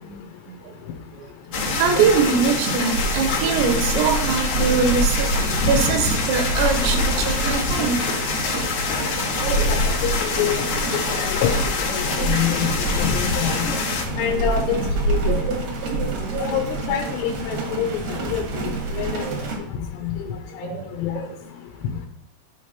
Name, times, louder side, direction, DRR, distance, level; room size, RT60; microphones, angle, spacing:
sound 1, 1.5-14.0, left 4 dB, 65° left, 1.9 m, -26 dB
sound 2, 1.5-19.6, right 2 dB, 70° right, 1.6 m, -27 dB
voice 1, 1.8-8.0 9.4-9.7 11.2-11.3 13.7-13.8 15.3-15.6 15.9-16.5 19.2-19.4 20.2-20.9 21.1-21.3, right 6 dB, 85° right, 4 dB, 3.2 m, -24 dB
voice 2, 9.4-10.6 11.1-11.5 11.9-12.7 13.0-13.7 14.2-14.8 15.1-15.4 16.4-18.5 18.9-19.2 20.0-20.7 21.0-21.2, left 9 dB, 85° left, 3 dB, 2.8 m, -26 dB
12.0 x 4.8 x 2.9 m, 0.74 s
omnidirectional pair, 5.1 m